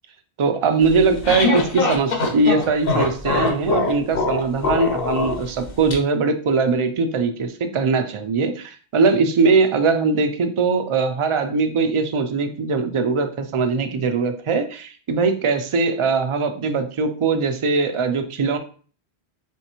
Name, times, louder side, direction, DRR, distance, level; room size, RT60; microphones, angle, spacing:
voice 1, 0.4-18.6, right 4 dB, 50° right, 6 dB, 0.3 m, -21 dB
sound 1, 0.9-5.9, left 4 dB, 60° left, 1.0 m, -23 dB
3.6 x 3.2 x 3.0 m, 0.41 s
omnidirectional pair, 1.1 m